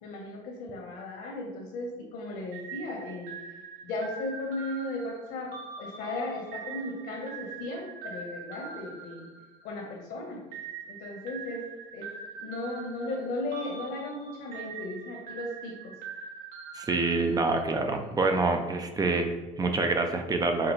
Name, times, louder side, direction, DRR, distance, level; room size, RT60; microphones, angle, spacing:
voice 1, 0.0-3.3 3.8-9.3 9.6-10.4 10.9-11.6 11.9-12.1 12.3-15.9, left 2 dB, 75° left, -1 dB, 1.3 m, -36 dB
sound 1, 2.5-9.9 10.5-17.8, right 6 dB, 60° right, 1.1 m, -43 dB
voice 2, 16.7-20.7, right 3 dB, 25° right, 5 dB, 0.5 m, -26 dB
5.8 x 2.2 x 3.2 m, 1.1 s
supercardioid pair, 95°, 16 cm